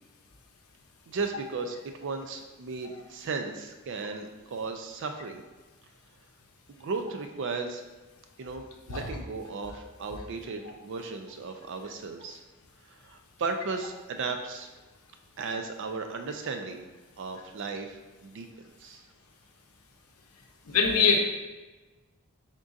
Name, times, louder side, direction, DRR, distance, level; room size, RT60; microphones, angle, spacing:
voice 1, 1.1-5.4 6.7-7.8 8.4-12.4 12.9-14.7 15.4-16.8 17.2-18.5 18.8-19.0, right 4 dB, 55° right, 5 dB, 0.4 m, -35 dB
voice 2, 20.7-21.2, left 5 dB, 80° left, 2 dB, 0.6 m, -22 dB
3.7 x 2.4 x 3.9 m, 1.2 s
head